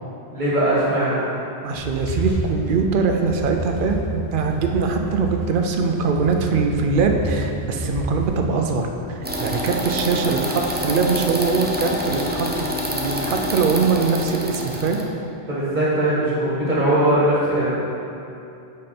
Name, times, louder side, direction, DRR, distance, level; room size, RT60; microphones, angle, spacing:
voice 1, 0.3-1.2 15.5-17.7, right 1 dB, 45° right, -8 dB, 1.5 m, -20 dB
voice 2, 1.6-15.0, right 4 dB, 60° right, 3 dB, 0.7 m, -22 dB
sound 1, 1.7-11.6, equal, 70° left, 1.5 m, -31 dB
sound 2, 9.2-15.0, equal, 15° right, 0.4 m, -27 dB
5.3 x 5.3 x 4.3 m, 2.7 s
omnidirectional pair, 1.1 m